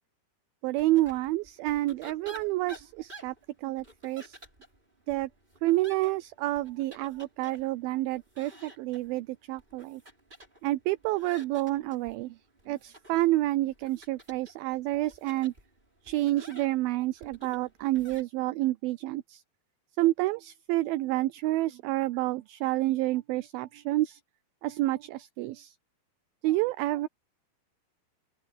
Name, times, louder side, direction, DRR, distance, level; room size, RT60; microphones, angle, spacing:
voice 1, 0.6-3.3 3.6-4.4 5.1-5.3 5.6-10.0 10.6-12.3 12.7-15.5 16.1-19.4 20.0-24.2 24.6-25.7 26.4-27.1, right 17 dB, 80° right, 2.3 m, -29 dB
sound 1, 0.8-18.2, right 1 dB, 10° right, 6.6 m, -52 dB
open air
omnidirectional pair, 4.6 m